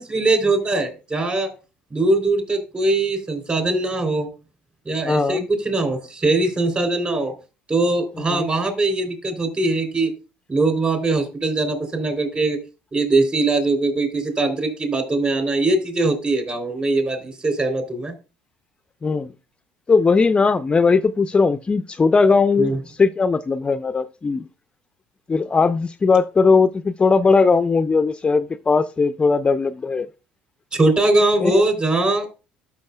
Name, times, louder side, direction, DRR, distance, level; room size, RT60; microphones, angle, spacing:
voice 1, 0.0-1.5 1.9-4.3 4.8-7.3 7.7-10.1 10.5-12.6 12.9-18.1 22.6-22.8 30.7-32.3, right 2 dB, 30° right, 3.2 m, -21 dB
voice 2, 5.1-5.5 8.3-8.5 19.0-19.3 19.9-24.5 25.3-30.1 31.4-31.6, left 4 dB, 25° left, 0.4 m, -18 dB
12.5 x 6.2 x 2.3 m
supercardioid pair, 75°, 4 cm